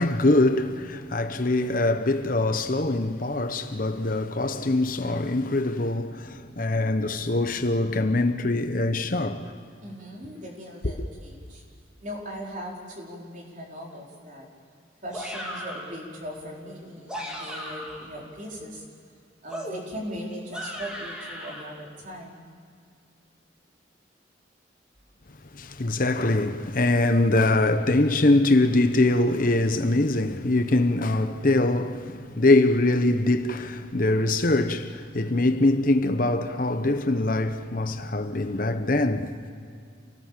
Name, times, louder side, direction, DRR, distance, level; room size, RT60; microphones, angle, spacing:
voice 1, 0.0-9.5 25.5-39.3, left 2 dB, 50° left, 1.0 m, -23 dB
voice 2, 9.8-11.6 12.0-14.5 15.0-18.8 19.4-22.4, equal, 45° right, 4.6 m, -39 dB
sound 1, 15.1-16.0 16.9-18.1 19.5-21.6, equal, 5° right, 3.3 m, -37 dB
28.5 x 18.0 x 7.5 m
head